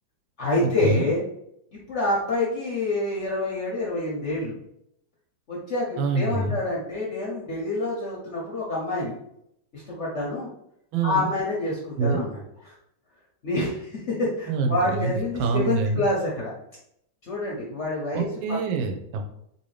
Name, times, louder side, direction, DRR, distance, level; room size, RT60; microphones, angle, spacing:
voice 1, 0.4-1.2 1.7-4.6 5.5-9.1 9.7-10.5 11.0-12.7 13.4-16.5 17.2-18.6, left 2 dB, 65° left, -4 dB, 0.7 m, -27 dB
voice 2, 6.0-6.6 10.9-11.3 12.0-12.2 14.5-15.1 15.4-16.0 18.1-19.2, right 4 dB, 85° right, 4 dB, 1.4 m, -25 dB
3.3 x 2.7 x 3.1 m, 0.76 s
omnidirectional pair, 2.1 m